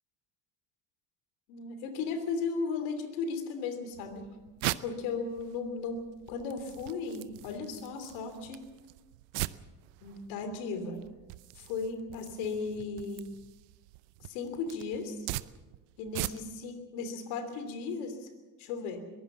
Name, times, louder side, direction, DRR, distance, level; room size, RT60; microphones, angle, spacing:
voice 1, 1.5-4.3 4.8-8.6 10.0-11.0 11.6-13.3 14.2-15.3 16.0-18.3 18.6-19.0, left 4 dB, 85° left, 9 dB, 3.2 m, -36 dB
sound 1, 3.9-16.7, right 19 dB, 85° right, 0.8 m, -42 dB
22.0 x 16.0 x 7.4 m, 1.2 s
supercardioid pair, 75°, 46 cm